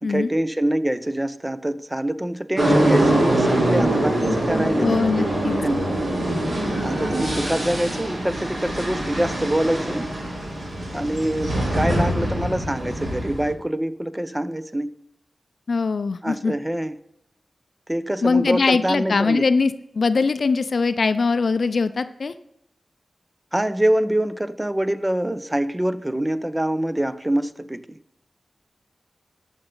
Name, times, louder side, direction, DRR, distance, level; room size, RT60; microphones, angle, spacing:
voice 1, 0.0-5.2 5.6-5.8 6.8-10.1 10.9-14.9 16.2-17.0 17.9-19.4 23.5-28.0, right 1 dB, 15° right, 0.6 m, -25 dB
sound 1, 2.6-13.5, right 1 dB, 75° right, 2.5 m, -23 dB
voice 2, 4.8-5.6 15.7-16.5 18.2-22.3, left 4 dB, 75° left, 0.4 m, -21 dB
14.0 x 5.4 x 3.8 m
cardioid pair, 40°, 0 cm